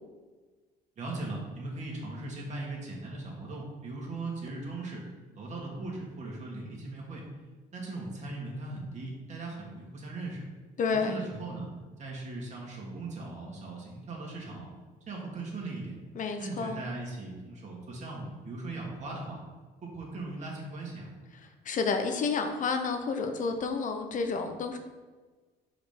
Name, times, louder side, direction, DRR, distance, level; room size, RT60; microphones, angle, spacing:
voice 1, 1.0-5.0 5.3-7.2 7.7-10.5 10.9-11.7 12.0-14.7 15.1-16.0 16.4-19.4 19.8-21.1, right 2 dB, 45° right, -2 dB, 2.2 m, -39 dB
voice 2, 10.8-11.2 16.1-16.8 21.6-24.8, left 4 dB, 50° left, 6 dB, 0.8 m, -30 dB
5.1 x 5.0 x 5.1 m, 1.3 s
cardioid pair, 110°, 17 cm